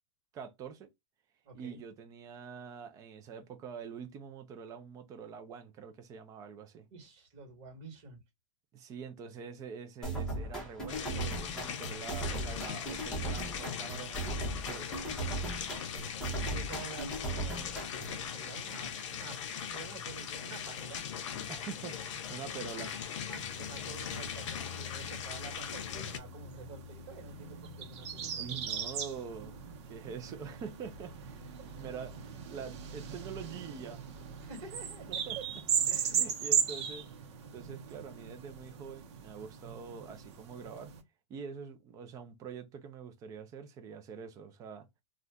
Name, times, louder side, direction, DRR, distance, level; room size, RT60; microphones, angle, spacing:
voice 1, 0.3-0.9 1.5-6.9 8.7-14.9 21.5-22.9 28.2-29.6 29.9-32.1 32.5-34.0 35.3-35.4 36.1-37.0 37.5-40.9 41.3-44.9, right 6 dB, 20° right, 0.5 m, -45 dB
voice 2, 1.4-1.8 6.9-8.2 16.3-17.7 18.0-19.4 19.6-21.0 21.3-21.5 23.3-28.6 29.6-29.7 30.0-30.2 34.4-35.4 35.9-36.2, right 4 dB, 40° right, 1.5 m, -49 dB
sound 1, 10.0-18.2, right 2 dB, 5° left, 0.9 m, -38 dB
sound 2, 10.9-26.2, left 8 dB, 65° left, 0.6 m, -40 dB
sound 3, 23.3-41.0, right 7 dB, 60° right, 0.7 m, -38 dB
2.5 x 2.2 x 3.5 m
supercardioid pair, 150°, 17 cm